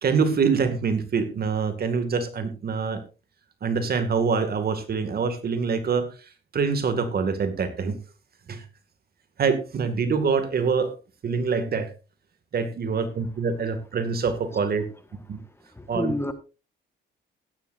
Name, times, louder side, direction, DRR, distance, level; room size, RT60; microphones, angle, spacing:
voice 1, 0.0-3.0 3.6-6.1 6.5-8.0 8.5-8.6 9.4-10.9 11.2-11.9 12.5-14.8 15.3-15.4 15.9-16.1, right 5 dB, 50° right, 9 dB, 2.1 m, -25 dB
voice 2, 15.8-16.3, left 2 dB, 10° left, 9 dB, 1.5 m, -28 dB
15.5 x 12.0 x 2.6 m, 0.30 s
cardioid pair, 90°, 20 cm